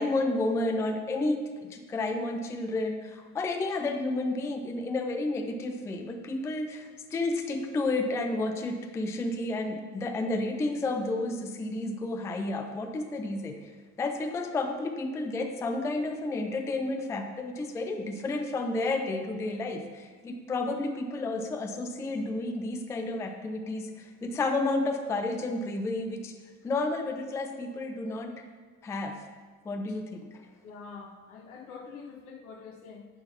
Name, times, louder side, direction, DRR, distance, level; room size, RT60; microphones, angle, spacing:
voice 1, 0.0-13.7 14.0-26.3 26.6-28.4 28.8-29.2 29.6-30.4, left 2 dB, 5° left, 5 dB, 0.4 m, -31 dB
voice 2, 30.6-33.1, left 5 dB, 65° left, 3 dB, 1.3 m, -45 dB
9.9 x 3.9 x 5.6 m, 1.5 s
figure-of-eight pair, 65°, 46 cm